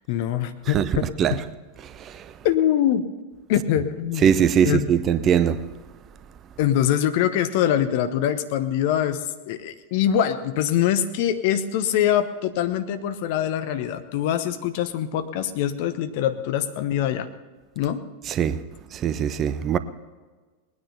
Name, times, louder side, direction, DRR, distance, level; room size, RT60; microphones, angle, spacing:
voice 1, 0.0-1.4 2.4-3.1 3.5-4.3 4.6-4.9 6.6-17.3 17.8-18.0, left 10 dB, 50° left, 1.0 m, -23 dB
voice 2, 4.2-5.6 18.4-18.6 18.9-19.8, right 8 dB, 30° right, 0.7 m, -20 dB
20.0 x 9.7 x 5.6 m
figure-of-eight pair, 90°, 0 cm